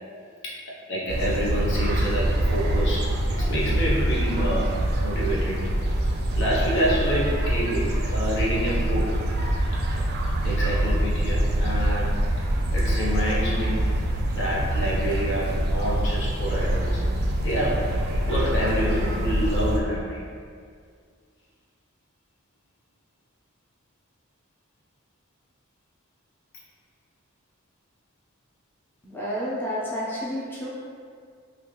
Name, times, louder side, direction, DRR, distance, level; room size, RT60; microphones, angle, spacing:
voice 1, 0.9-5.7 6.4-9.1 10.4-12.3 12.7-13.9 14.4-17.0 17.3-20.2, equal, 65° left, -5 dB, 0.7 m, -28 dB
sound 1, 1.1-19.8, right 1 dB, 50° right, 0.4 m, -25 dB
voice 2, 29.0-30.7, equal, 10° left, -8 dB, 0.5 m, -30 dB
3.3 x 2.4 x 3.0 m, 2.1 s
head